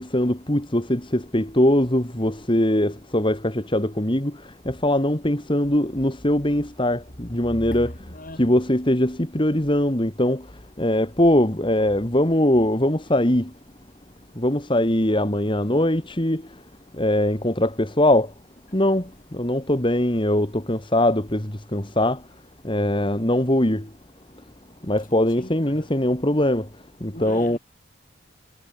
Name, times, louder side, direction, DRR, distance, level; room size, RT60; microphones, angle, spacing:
voice 1, 0.0-4.3 4.7-7.9 8.4-10.4 10.8-13.5 14.4-16.4 17.0-18.3 18.7-22.2 22.6-23.9 24.9-26.7 27.0-27.6, left 1 dB, 25° left, 2.3 m, -21 dB
voice 2, 7.5-8.6 25.4-25.9 27.1-27.6, left 1 dB, 40° left, 5.4 m, -38 dB
head